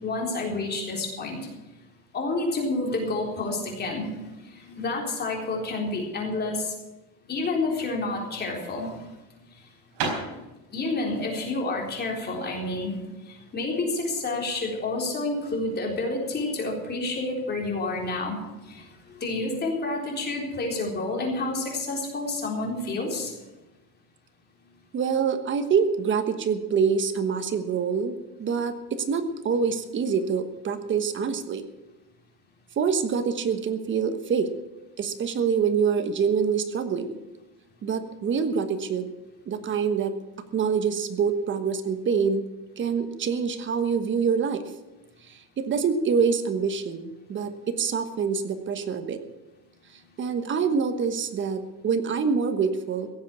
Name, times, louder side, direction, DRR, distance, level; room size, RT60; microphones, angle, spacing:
voice 1, 0.0-1.5 2.1-6.7 7.3-9.0 10.7-13.0 13.3-23.3, left 2 dB, 25° left, 0 dB, 3.9 m, -29 dB
sound 1, 9.5-13.7, right 4 dB, 65° right, 4.5 m, -36 dB
voice 2, 24.9-31.6 32.8-34.5 35.0-37.2 37.8-39.1 39.5-40.2 40.5-42.4 42.8-44.7 45.3-49.2 50.2-53.1, right 6 dB, 30° right, 9 dB, 1.3 m, -26 dB
16.5 x 7.5 x 8.3 m, 1.1 s
cardioid pair, 145°, 37 cm